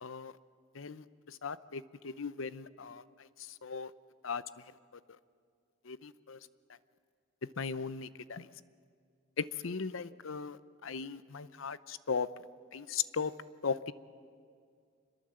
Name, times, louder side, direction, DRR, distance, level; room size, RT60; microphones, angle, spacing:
voice 1, 0.0-0.3 0.8-1.0 1.4-3.0 3.6-3.9 4.2-4.4 5.9-6.4 7.6-8.4 9.4-10.6 10.8-12.3 12.7-13.3 13.6-13.9, left 5 dB, 80° left, 16 dB, 0.7 m, -37 dB
26.0 x 21.5 x 7.7 m, 2.2 s
head